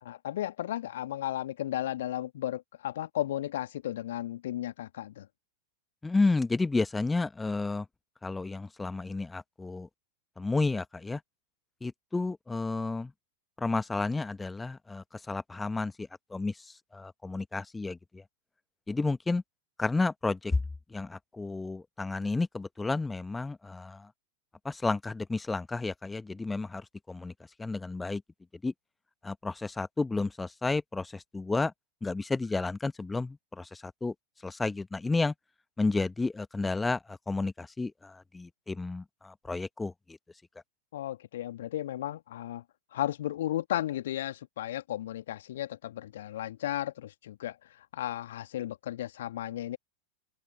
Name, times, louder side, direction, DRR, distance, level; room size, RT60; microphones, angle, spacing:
voice 1, 0.0-5.3 40.9-42.6 42.9-47.6 47.9-49.8, left 13 dB, 60° left, 2.2 m, -34 dB
voice 2, 6.0-7.9 8.2-9.9 10.4-11.2 11.8-13.1 13.6-18.2 18.9-19.4 19.8-20.6 20.9-24.1 24.6-27.3 27.6-28.2 28.6-28.7 29.2-31.7 32.0-34.1 34.4-35.3 35.8-40.2, left 3 dB, 10° left, 1.4 m, -31 dB
open air
figure-of-eight pair, 90°, 0 cm